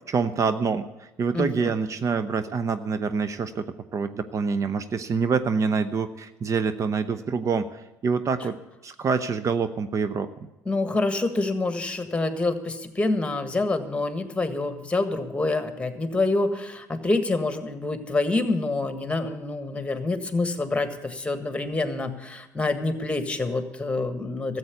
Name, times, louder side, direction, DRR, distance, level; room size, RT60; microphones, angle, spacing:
voice 1, 0.1-8.5 8.8-10.3, right 5 dB, 40° right, 11 dB, 0.7 m, -26 dB
voice 2, 1.3-1.7 10.6-24.6, left 2 dB, 15° left, 9 dB, 1.6 m, -27 dB
13.5 x 8.0 x 8.2 m, 1.0 s
hypercardioid pair, 70°, 8 cm